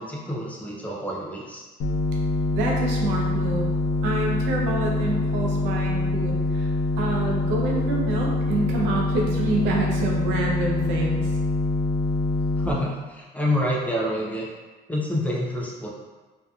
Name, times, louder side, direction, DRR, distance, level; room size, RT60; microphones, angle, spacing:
voice 1, 0.0-1.7 12.6-14.5 14.9-15.9, left 1 dB, 10° left, -3 dB, 0.3 m, -27 dB
sound 1, 1.8-12.7, left 2 dB, 75° left, 0.4 m, -24 dB
voice 2, 2.5-3.7 4.0-11.3, right 2 dB, 90° right, -1 dB, 0.6 m, -27 dB
2.6 x 2.3 x 2.3 m, 1.3 s
cardioid pair, 140°, 18 cm